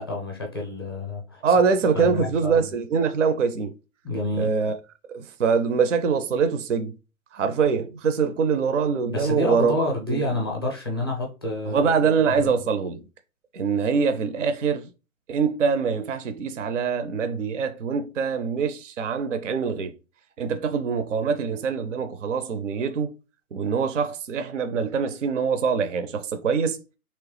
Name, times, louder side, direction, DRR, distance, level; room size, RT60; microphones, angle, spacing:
voice 1, 0.0-1.6 1.9-2.6 4.0-4.5 9.1-11.9 12.3-12.5, left 2 dB, 15° left, 0.5 m, -28 dB
voice 2, 1.4-3.7 4.4-4.8 5.1-6.9 7.3-10.3 11.7-13.0 13.5-14.9 15.3-19.9 20.4-23.1 23.5-26.8, right 5 dB, 60° right, 0.5 m, -24 dB
3.0 x 2.9 x 3.2 m
figure-of-eight pair, 145°, 44 cm